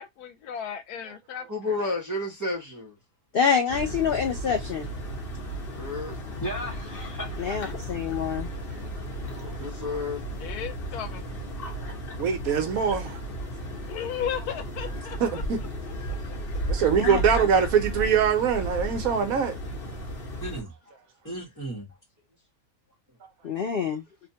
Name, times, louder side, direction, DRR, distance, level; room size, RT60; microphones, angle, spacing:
voice 1, 0.0-1.8 10.4-11.3 13.9-15.4 16.1-16.2, left 9 dB, 85° left, 1.1 m, -35 dB
voice 2, 1.5-2.9 5.7-6.2 9.4-10.3, left 2 dB, 30° right, 0.3 m, -31 dB
voice 3, 3.3-4.9 7.4-8.5 17.0-17.2 23.4-24.0, left 6 dB, 70° left, 0.5 m, -26 dB
sound 1, 3.7-20.6, right 1 dB, 45° left, 1.0 m, -34 dB
voice 4, 6.4-7.6 20.4-20.7 21.2-21.9, right 1 dB, 15° left, 0.8 m, -35 dB
voice 5, 12.2-13.2 15.2-15.6 16.7-19.6, right 7 dB, 70° right, 1.1 m, -23 dB
2.8 x 2.2 x 2.7 m
omnidirectional pair, 1.6 m